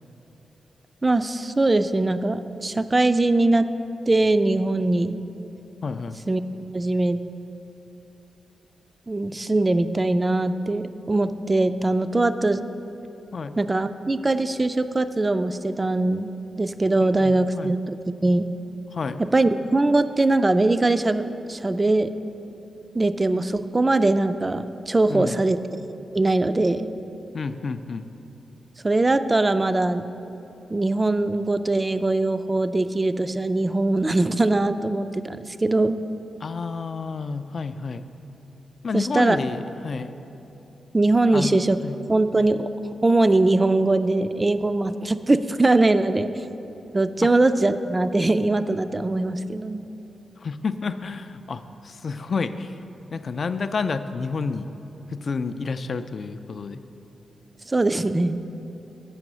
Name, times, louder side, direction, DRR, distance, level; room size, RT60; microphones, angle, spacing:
voice 1, 1.0-3.7 4.1-5.3 6.3-6.4 6.7-7.2 9.1-12.6 13.6-18.0 18.2-18.5 19.2-21.2 21.5-22.1 22.9-25.6 26.1-26.9 28.8-30.1 30.7-36.0 38.9-39.4 40.9-41.8 42.1-42.7 43.0-46.3 46.9-49.8 57.7-58.4, right 2 dB, 25° right, 11 dB, 0.3 m, -21 dB
voice 2, 5.8-6.2 13.3-13.5 17.0-17.7 18.9-19.2 25.1-25.4 27.3-28.1 36.4-38.0 38.8-40.1 41.3-41.9 50.4-52.7 53.1-54.7 55.1-56.8, left 4 dB, 55° left, 10 dB, 0.3 m, -30 dB
7.7 x 5.4 x 6.1 m, 3.0 s
cardioid pair, 65°, 0 cm